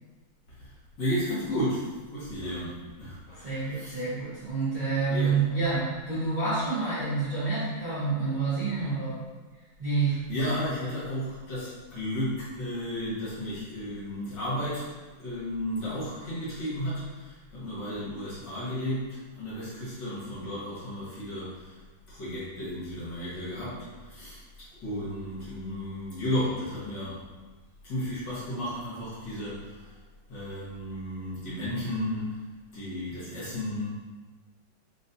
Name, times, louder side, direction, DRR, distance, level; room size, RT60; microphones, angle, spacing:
voice 1, 1.0-4.0 5.1-5.4 10.3-14.9 15.2-21.8 22.1-24.4 24.8-27.2 27.8-30.0 30.3-32.4 32.7-33.9, left 1 dB, 60° left, -10 dB, 2.0 m, -33 dB
voice 2, 3.4-9.2 9.8-10.1, right 4 dB, 25° right, -14 dB, 1.4 m, -28 dB
4.2 x 3.2 x 2.7 m, 1.3 s
omnidirectional pair, 2.3 m